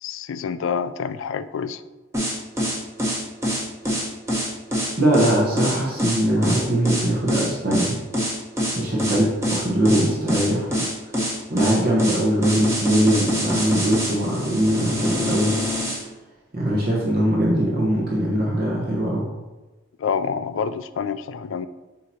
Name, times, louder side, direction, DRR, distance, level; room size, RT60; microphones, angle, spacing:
voice 1, 0.0-1.8 20.0-21.7, left 6 dB, 65° left, 13 dB, 0.3 m, -27 dB
sound 1, 2.1-16.0, equal, 15° right, 1.1 m, -25 dB
voice 2, 5.0-8.0 8.8-10.7 11.5-15.5 16.5-19.3, right 1 dB, 45° right, -4 dB, 1.1 m, -21 dB
7.6 x 2.9 x 4.2 m, 1.2 s
head